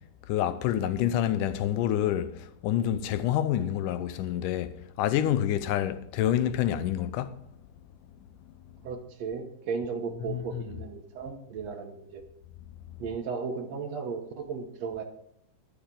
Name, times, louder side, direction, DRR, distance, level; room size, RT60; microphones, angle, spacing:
voice 1, 0.3-2.3 2.6-7.3 10.3-10.6, left 11 dB, 85° left, 2.3 m, -27 dB
voice 2, 8.8-12.2 13.0-15.0, right 5 dB, 65° right, 2.0 m, -35 dB
20.5 x 7.0 x 3.8 m
omnidirectional pair, 3.6 m